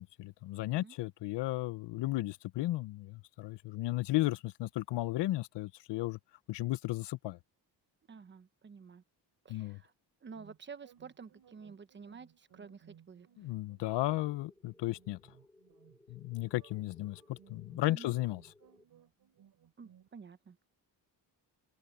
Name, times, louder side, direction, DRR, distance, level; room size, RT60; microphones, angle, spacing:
voice 1, 0.0-6.2 6.5-7.4 9.5-9.8 13.4-15.2 16.1-18.4, left 17 dB, 75° left, 0.7 m, -34 dB
voice 2, 8.1-9.0 9.4-9.9 10.2-13.3 17.9-18.1 19.8-20.6, right 5 dB, 25° right, 1.0 m, -50 dB
sound 1, 10.3-20.1, right 9 dB, 60° right, 2.9 m, -63 dB
sound 2, 13.8-18.8, left 2 dB, 5° left, 1.8 m, -64 dB
open air
cardioid pair, 160°, 42 cm